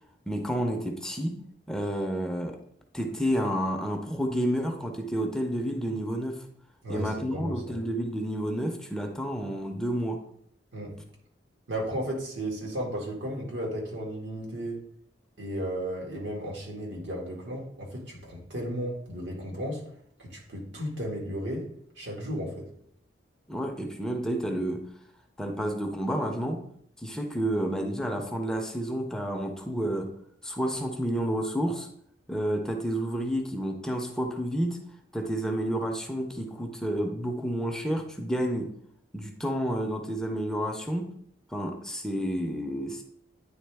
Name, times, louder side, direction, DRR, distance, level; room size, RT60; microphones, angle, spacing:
voice 1, 0.3-1.4 1.7-2.6 2.9-6.5 6.9-10.2 23.5-24.8 25.4-26.7 27.0-30.1 30.4-31.9 32.3-34.8 35.1-38.7 39.1-41.1 41.5-43.0, equal, 5° left, 3 dB, 0.5 m, -30 dB
voice 2, 6.8-7.8 10.7-11.0 11.7-14.8 15.4-19.8 20.2-21.7 22.0-22.7, equal, 85° right, -2 dB, 1.9 m, -34 dB
9.4 x 3.5 x 3.4 m, 0.66 s
head